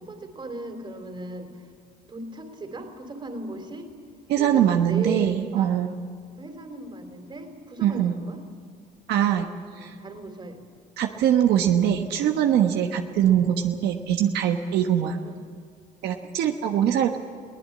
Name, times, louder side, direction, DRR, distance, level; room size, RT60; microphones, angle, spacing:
voice 1, 0.0-1.7 2.1-3.9 4.4-5.7 6.4-8.4 9.7-10.6 13.3-13.4 15.2-15.4, right 2 dB, 30° right, 6 dB, 3.4 m, -37 dB
voice 2, 4.3-6.0 7.8-8.1 9.1-9.5 9.8-9.9 11.0-15.2 16.0-17.2, right 10 dB, 80° right, 4 dB, 1.3 m, -22 dB
22.5 x 17.0 x 8.7 m, 2.1 s
cardioid pair, 110°, 17 cm